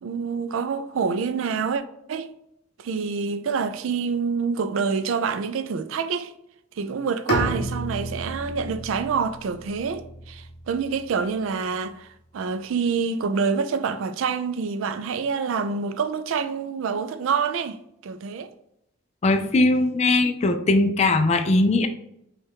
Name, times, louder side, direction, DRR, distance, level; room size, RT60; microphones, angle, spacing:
voice 1, 0.0-1.8 2.1-2.3 2.8-6.3 6.8-17.8 18.0-18.5, right 5 dB, 70° right, 0.4 m, -27 dB
Bowed string instrument, 7.3-11.2, right 1 dB, 55° left, 1.0 m, -32 dB
voice 2, 19.2-21.9, left 2 dB, 30° left, 0.3 m, -20 dB
5.3 x 2.4 x 3.6 m
head